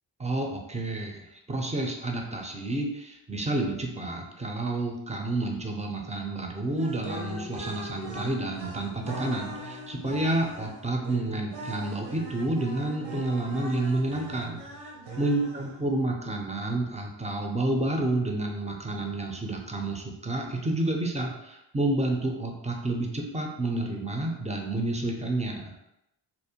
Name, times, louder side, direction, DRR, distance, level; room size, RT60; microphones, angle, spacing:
voice 1, 0.2-14.6 15.2-25.7, right 2 dB, 15° right, 2 dB, 0.4 m, -30 dB
sound 1, 6.7-16.0, right 1 dB, 80° right, 0.8 m, -40 dB
2.5 x 2.0 x 2.7 m, 0.85 s
cardioid pair, 65°, 46 cm